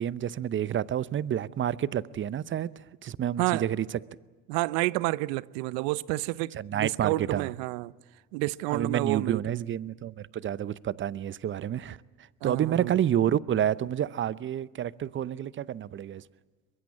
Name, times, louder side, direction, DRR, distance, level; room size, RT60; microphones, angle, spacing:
voice 1, 0.0-3.9 6.5-7.5 8.7-12.0 12.4-16.2, right 10 dB, 30° right, 0.7 m, -29 dB
voice 2, 4.5-7.9 8.3-9.6 12.4-12.9, right 21 dB, 65° right, 0.7 m, -29 dB
23.0 x 22.5 x 8.4 m
hypercardioid pair, 75°, 38 cm